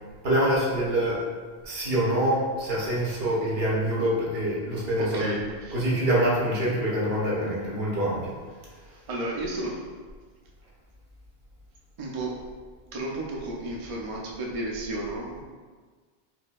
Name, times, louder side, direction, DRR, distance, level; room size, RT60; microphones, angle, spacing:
voice 1, 0.2-1.3 1.6-5.4 5.7-8.3, right 1 dB, 75° right, -5 dB, 1.1 m, -25 dB
voice 2, 5.0-5.9 8.9-9.9 12.0-12.5 12.9-15.4, right 2 dB, 45° right, -2 dB, 0.5 m, -33 dB
4.3 x 2.7 x 2.3 m, 1.5 s
omnidirectional pair, 1.0 m